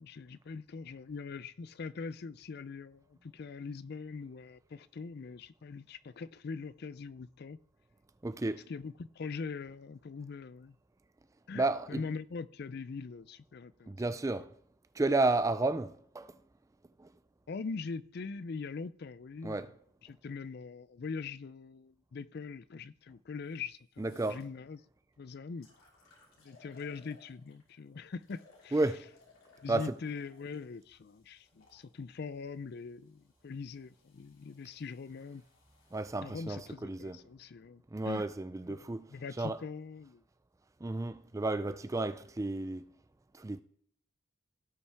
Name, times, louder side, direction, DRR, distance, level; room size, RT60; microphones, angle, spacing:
voice 1, 0.0-7.6 8.7-10.8 11.5-13.9 14.3-14.4 17.5-19.6 20.0-24.8 25.2-25.7 26.4-28.8 29.6-35.4 36.2-38.3 38.7-40.2, left 4 dB, 50° left, 0.4 m, -42 dB
voice 2, 8.2-8.6 11.6-12.0 13.9-14.5 15.0-16.4 17.0-17.1 19.4-19.7 24.0-24.4 28.7-29.1 29.7-29.9 35.9-37.2 37.9-39.0 39.4-39.6 40.8-42.9 43.3-43.6, right 2 dB, 15° right, 0.3 m, -32 dB
sound 1, 23.4-23.5 23.9-24.4 25.1-25.2 25.6-27.7 28.2-31.8 32.7-36.1, left 3 dB, 85° left, 3.5 m, -64 dB
17.0 x 5.6 x 3.5 m
head